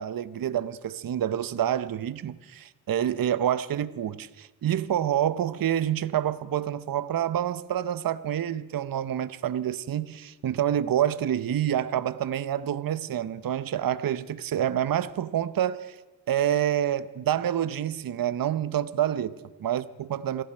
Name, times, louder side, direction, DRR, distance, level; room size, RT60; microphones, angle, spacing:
voice 1, 0.0-16.0 16.3-20.4, right 10 dB, 45° right, 0.8 m, -27 dB
28.0 x 11.5 x 4.5 m
cardioid pair, 60°, 47 cm